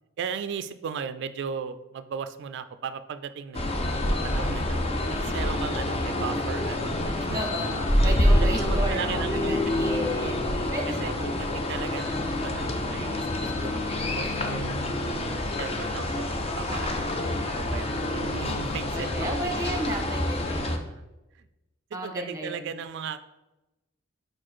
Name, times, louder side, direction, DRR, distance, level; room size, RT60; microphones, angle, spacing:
voice 1, 0.2-4.8 5.1-7.4 8.0-8.1 8.4-9.8 10.2-14.7 15.6-19.4 20.6-21.0 21.4-21.5 22.0-23.2, right 6 dB, 55° right, 11 dB, 0.3 m, -37 dB
sound 1, 3.5-20.8, left 1 dB, 30° left, 0.6 m, -27 dB
Bass guitar, 4.1-4.8 5.2-5.3 5.6-7.2 8.0-9.6 10.4-11.5 11.8-13.7, equal, ahead, 1.6 m, -43 dB
voice 2, 7.3-10.4 10.7-11.3 16.7-17.1 18.9-20.6 21.9-22.6, right 1 dB, 15° right, 3 dB, 0.9 m, -33 dB
4.9 x 4.6 x 4.4 m, 1.0 s
head